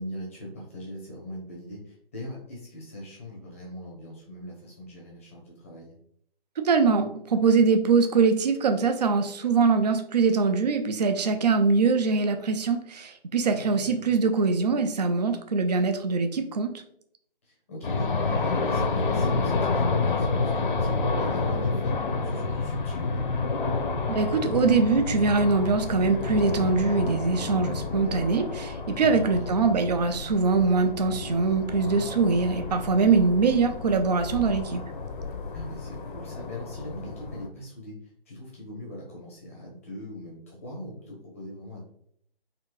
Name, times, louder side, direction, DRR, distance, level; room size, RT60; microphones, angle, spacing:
voice 1, 0.0-5.9 13.5-14.1 17.4-23.4 29.0-29.5 35.5-37.9 38.3-41.9, left 1 dB, 15° left, -3 dB, 0.6 m, -41 dB
voice 2, 6.6-16.7 24.1-34.8, right 4 dB, 45° right, 7 dB, 0.4 m, -23 dB
sound 1, 17.8-37.5, left 3 dB, 60° left, 0.6 m, -29 dB
4.0 x 2.7 x 3.0 m, 0.67 s
hypercardioid pair, 160°, 29 cm